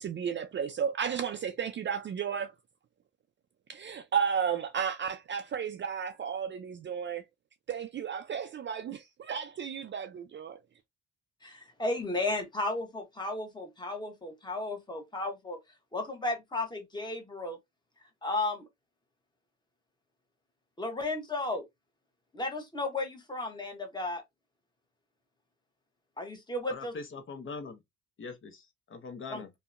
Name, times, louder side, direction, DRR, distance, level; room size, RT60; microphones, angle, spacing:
voice 1, 0.0-2.5 3.7-7.3 7.7-10.6, right 7 dB, 40° right, 0.4 m, -33 dB
voice 2, 11.4-15.6 15.9-17.6 18.2-18.7 20.8-21.7 22.3-24.2 26.2-26.9 29.3-29.4, left 2 dB, 15° left, 0.9 m, -34 dB
voice 3, 26.7-27.8 28.2-29.5, left 4 dB, 40° left, 0.7 m, -42 dB
2.7 x 2.1 x 2.4 m
cardioid pair, 90°, 30 cm